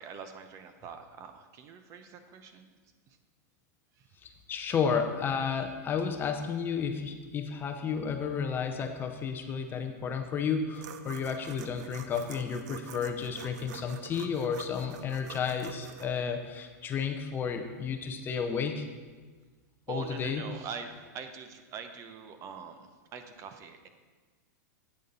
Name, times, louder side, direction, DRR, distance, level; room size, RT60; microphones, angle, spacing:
voice 1, 0.0-2.7 3.1-3.2 4.0-4.1 19.9-23.9, right 6 dB, 30° right, 8 dB, 0.7 m, -44 dB
voice 2, 4.2-18.8 19.9-20.4, left 6 dB, 20° left, 6 dB, 0.6 m, -32 dB
sound 1, 10.7-16.1, right 8 dB, 70° right, 0.7 m, -46 dB
8.6 x 6.5 x 5.3 m, 1.4 s
supercardioid pair, 145°, 10 cm